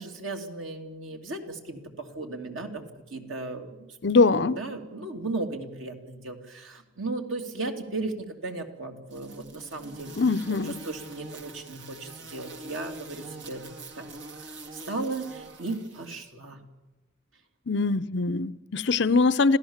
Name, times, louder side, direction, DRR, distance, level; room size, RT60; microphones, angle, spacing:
voice 1, 0.0-3.9 4.3-10.1 10.5-10.6 10.8-13.7 13.9-14.1 14.4-16.6, right 2 dB, 85° right, 3.0 m, -36 dB
voice 2, 4.0-4.6 10.2-10.8 17.7-19.6, left 3 dB, 60° left, 0.7 m, -22 dB
sound 1, 9.1-16.2, right 2 dB, 65° right, 2.0 m, -44 dB
27.0 x 16.5 x 7.3 m
head